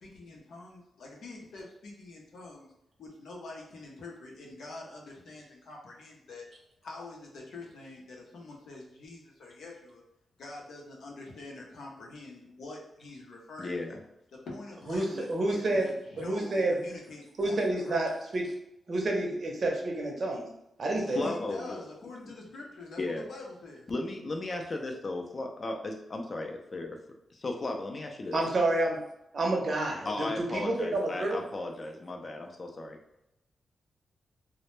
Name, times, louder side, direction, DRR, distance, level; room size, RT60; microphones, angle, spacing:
voice 1, 0.0-2.7 3.0-6.5 6.8-10.0 10.4-13.8 14.3-18.0 21.2-23.0 23.3-23.9, left 2 dB, 85° left, -2 dB, 0.6 m, -45 dB
voice 2, 13.6-14.0 21.1-21.8 23.0-23.2 23.9-27.0 27.3-28.4 30.1-33.0, left 2 dB, 40° left, 3 dB, 0.4 m, -35 dB
voice 3, 14.9-15.8 16.2-16.7 17.4-18.4 18.9-20.5 20.8-21.3 28.3-29.0 29.3-31.4, right 2 dB, 55° right, 0 dB, 0.6 m, -29 dB
2.1 x 2.0 x 3.0 m, 0.83 s
cardioid pair, 95°, 0 cm